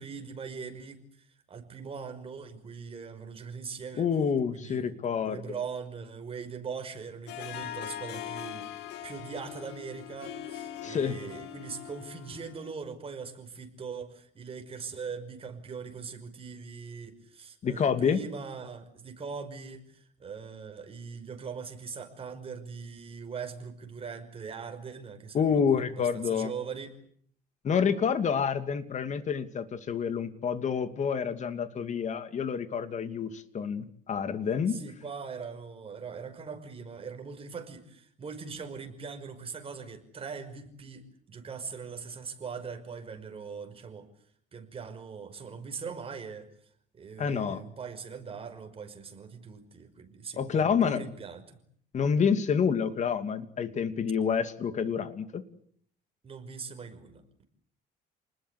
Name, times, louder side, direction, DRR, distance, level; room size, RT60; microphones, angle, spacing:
voice 1, 0.0-4.1 4.5-4.9 5.2-26.9 34.7-44.1 44.5-46.5 46.9-51.4 56.2-57.4, right 5 dB, 35° right, 6 dB, 5.7 m, -41 dB
voice 2, 4.0-5.6 10.8-11.2 17.6-18.2 25.3-26.5 27.6-34.8 47.2-47.6 50.4-51.1 51.9-55.4, left 6 dB, 45° left, 10 dB, 2.7 m, -28 dB
Harp, 7.3-12.7, left 10 dB, 85° left, 2.9 m, -41 dB
30.0 x 20.5 x 8.5 m, 0.63 s
cardioid pair, 110°, 17 cm